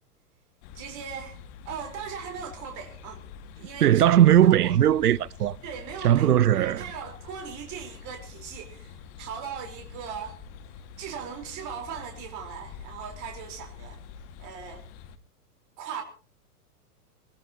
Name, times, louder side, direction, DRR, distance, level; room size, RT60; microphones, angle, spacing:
sound 1, 0.6-15.2, left 6 dB, 40° left, 2.0 m, -46 dB
voice 1, 0.7-1.4 1.6-3.2 3.6-3.9 4.4-4.8 5.6-10.4 11.0-14.0 14.4-14.8 15.8-16.0, right 7 dB, 40° right, 4.3 m, -39 dB
voice 2, 3.8-5.6 6.0-6.8, right 11 dB, 80° right, 0.7 m, -19 dB
21.5 x 20.5 x 2.9 m
hypercardioid pair, 105°, 46 cm